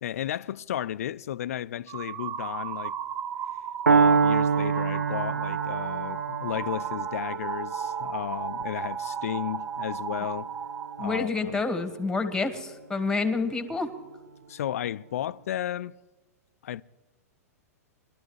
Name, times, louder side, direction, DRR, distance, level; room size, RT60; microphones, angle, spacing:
voice 1, 0.0-2.9 3.9-10.5 11.0-11.6 14.5-16.0 16.6-16.8, left 11 dB, 65° left, 0.3 m, -33 dB
sound 1, 1.9-11.2, right 8 dB, 25° right, 0.6 m, -35 dB
Piano, 3.9-11.8, right 5 dB, 85° right, 0.6 m, -27 dB
voice 2, 11.0-13.9, left 3 dB, 5° left, 1.4 m, -28 dB
22.0 x 12.5 x 3.1 m
figure-of-eight pair, 105°, 8 cm